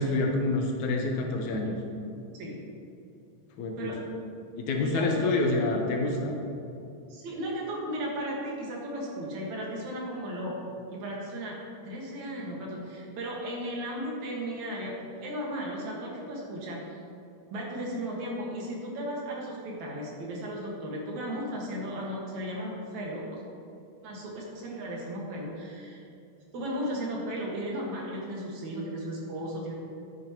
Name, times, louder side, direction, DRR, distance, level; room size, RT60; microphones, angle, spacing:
voice 1, 0.0-1.8 3.6-3.9 4.6-6.4, left 2 dB, 75° left, 1 dB, 2.4 m, -27 dB
voice 2, 4.8-5.4 7.1-11.6 11.8-17.0 17.5-23.4 24.0-26.0 26.5-29.7, equal, 70° right, -3 dB, 3.0 m, -35 dB
12.0 x 9.6 x 3.0 m, 2.6 s
omnidirectional pair, 3.5 m